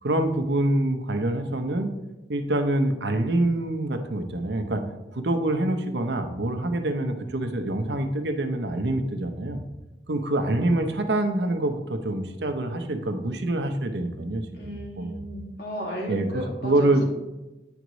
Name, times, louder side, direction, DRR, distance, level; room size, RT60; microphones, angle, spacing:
voice 1, 0.0-1.9 2.3-4.8 5.1-9.6 10.1-15.3 16.1-17.1, right 1 dB, 70° right, 6 dB, 0.8 m, -26 dB
voice 2, 14.5-17.1, right 1 dB, 65° left, -2 dB, 2.2 m, -34 dB
9.2 x 4.8 x 4.0 m, 1.0 s
head